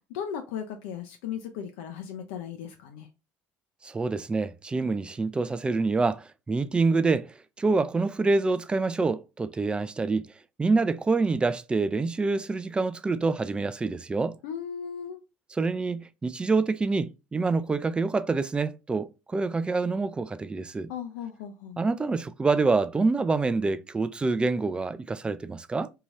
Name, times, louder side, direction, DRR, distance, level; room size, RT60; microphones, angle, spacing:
voice 1, 0.1-3.1 14.4-15.2 20.9-21.8, left 8 dB, 85° left, 0.5 m, -36 dB
voice 2, 3.8-10.3 10.6-14.4 15.5-20.9 21.8-25.9, right 3 dB, 20° right, 0.3 m, -26 dB
2.7 x 2.4 x 3.1 m
supercardioid pair, 90°, 6 cm